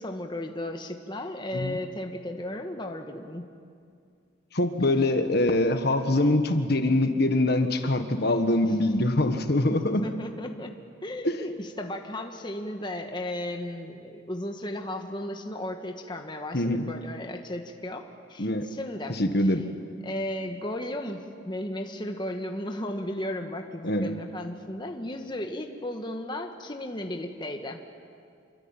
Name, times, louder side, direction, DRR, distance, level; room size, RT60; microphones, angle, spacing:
voice 1, 0.0-3.4 8.6-8.8 9.7-10.7 11.0-18.0 18.3-19.6 20.0-27.8, left 1 dB, 25° left, 4 dB, 1.5 m, -35 dB
voice 2, 4.5-10.0 11.2-11.4 16.5-16.8 18.4-18.7 19.1-19.6 23.8-24.1, left 1 dB, 55° left, 7 dB, 1.5 m, -24 dB
28.0 x 24.0 x 9.0 m, 2.3 s
head